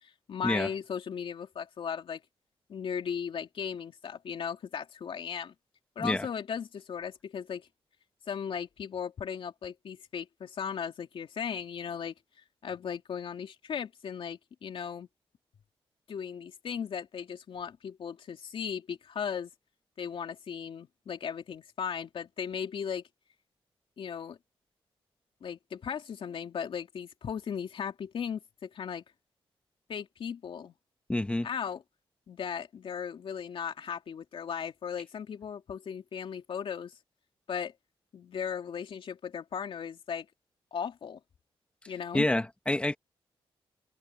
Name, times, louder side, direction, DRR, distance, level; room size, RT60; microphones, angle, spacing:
voice 1, 0.0-2.2 2.7-5.5 5.9-7.7 8.3-12.1 12.6-15.1 16.1-19.5 20.0-23.0 24.0-24.4 25.4-29.0 29.9-30.7 31.4-31.8 32.3-37.0 37.5-37.7 38.1-40.3 40.7-41.2 41.9-42.3, left 7 dB, 65° left, 3.0 m, -37 dB
voice 2, 31.1-31.5 42.1-43.0, left 1 dB, 10° left, 1.7 m, -28 dB
wide cardioid pair, 125°, 10 cm